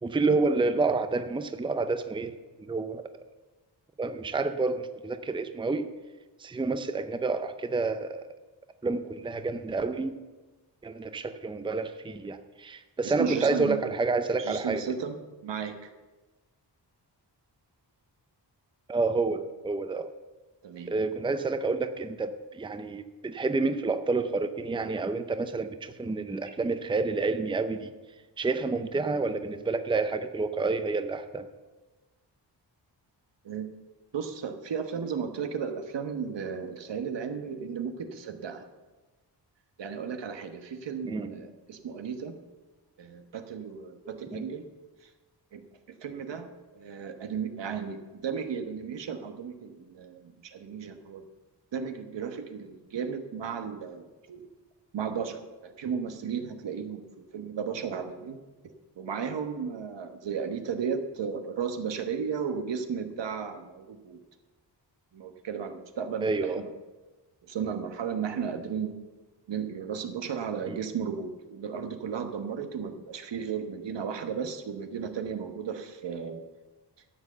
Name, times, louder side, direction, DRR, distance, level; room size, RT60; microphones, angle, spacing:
voice 1, 0.0-2.3 2.6-3.1 4.0-5.9 6.4-8.3 8.8-10.1 10.8-14.8 18.9-20.1 20.9-27.9 28.4-31.5 41.0-41.3 44.3-44.4 66.2-66.6 70.7-70.8, right 3 dB, 10° right, 9 dB, 0.5 m, -29 dB
voice 2, 13.0-13.8 14.4-15.9 20.6-20.9 33.4-33.7 34.1-38.7 39.8-42.4 43.0-44.7 45.0-45.1 45.5-45.6 46.0-51.2 51.7-54.5 54.9-57.0 57.3-58.4 59.0-64.2 65.1-66.7 67.4-68.9 69.5-76.4, right 6 dB, 80° right, 6 dB, 1.2 m, -34 dB
12.5 x 7.6 x 6.8 m, 1.2 s
wide cardioid pair, 125°, 42 cm